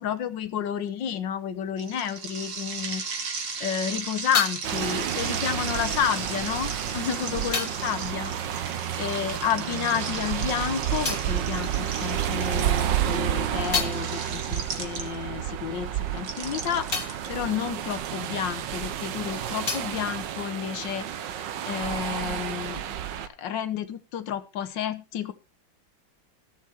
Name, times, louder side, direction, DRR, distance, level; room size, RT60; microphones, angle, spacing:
voice 1, 0.0-22.9 23.1-25.3, left 9 dB, 65° left, 11 dB, 1.7 m, -31 dB
sound 1, 1.8-15.4 16.2-18.1, right 4 dB, 50° right, 2.0 m, -37 dB
sound 2, 3.5-9.5 9.8-12.5 12.9-18.9 19.2-21.2, left 5 dB, 35° left, 1.3 m, -37 dB
sound 3, 4.6-23.3, right 11 dB, 70° right, 1.5 m, -30 dB
15.0 x 7.2 x 4.4 m, 0.29 s
omnidirectional pair, 2.2 m